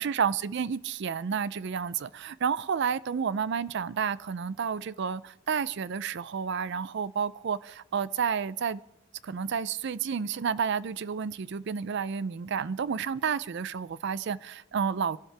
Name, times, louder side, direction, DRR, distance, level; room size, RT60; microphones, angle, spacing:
voice 1, 0.0-8.8 9.2-15.2, right 6 dB, 55° right, 0.4 m, -30 dB
26.5 x 12.0 x 3.3 m
head